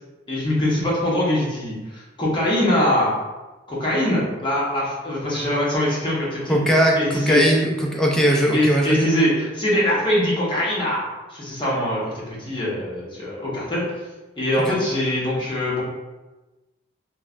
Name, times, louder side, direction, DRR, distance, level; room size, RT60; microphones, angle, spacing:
voice 1, 0.3-3.1 3.7-6.6 7.0-7.4 8.5-13.8 14.4-15.8, left 1 dB, 25° left, -6 dB, 0.8 m, -23 dB
voice 2, 6.5-9.1 14.6-14.8, equal, 5° left, -2 dB, 0.3 m, -19 dB
3.0 x 2.1 x 2.4 m, 1.1 s
head